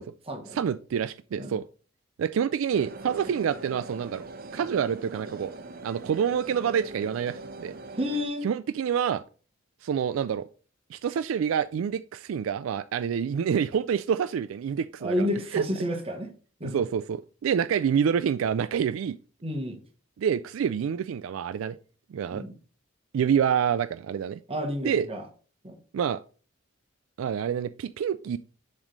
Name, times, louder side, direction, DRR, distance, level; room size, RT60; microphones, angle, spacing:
voice 1, 0.0-0.6 1.4-1.5 8.0-8.5 15.0-16.3 16.6-16.8 19.4-19.8 22.3-22.5 24.5-25.2 25.6-25.8, left 1 dB, 30° right, 1.2 m, -30 dB
voice 2, 0.5-1.6 2.2-4.2 4.5-5.5 5.8-7.7 8.4-9.2 9.8-10.5 10.9-15.3 15.5-15.6 16.6-19.2 20.2-21.8 22.1-22.4 23.1-24.4 24.8-25.1 25.9-26.2 27.2-28.4, right 8 dB, 80° right, 0.3 m, -27 dB
sound 1, 2.7-8.3, right 2 dB, 50° right, 0.8 m, -42 dB
7.2 x 3.2 x 5.1 m
head